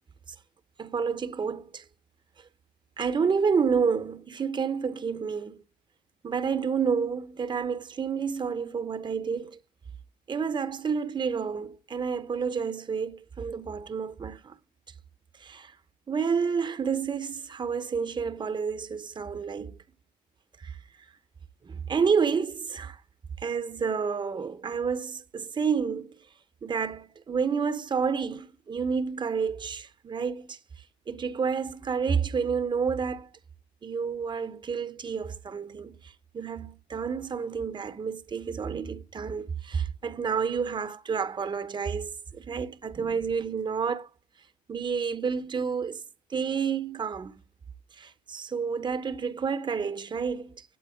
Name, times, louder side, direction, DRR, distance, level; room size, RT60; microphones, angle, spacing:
voice 1, 0.8-1.8 3.0-5.6 6.2-9.6 10.3-14.5 15.4-15.7 16.1-19.8 20.6-20.7 21.6-23.0 23.4-26.1 26.6-30.6 31.1-33.3 33.8-36.0 36.3-44.1 44.7-46.0 46.3-47.3 48.0-50.6, right 6 dB, 25° right, 0.8 m, -29 dB
8.5 x 4.1 x 6.8 m
cardioid pair, 110°, 17 cm